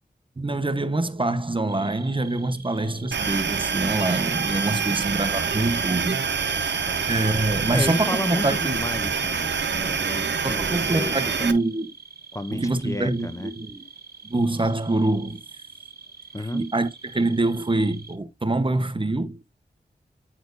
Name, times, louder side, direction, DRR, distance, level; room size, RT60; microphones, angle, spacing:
voice 1, 0.4-6.2 6.6-6.8 7.1-8.8 10.4-11.9 12.5-13.8 14.2-15.4 16.5-19.4, right 2 dB, 30° right, 1.0 m, -25 dB
sound 1, 1.7-18.2, right 5 dB, 60° right, 2.2 m, -46 dB
sound 2, 3.1-11.5, right 5 dB, 80° right, 0.9 m, -26 dB
voice 2, 7.7-11.5 12.3-13.5 16.3-16.6, left 2 dB, 15° left, 0.5 m, -33 dB
9.4 x 4.4 x 2.6 m
cardioid pair, 45°, 18 cm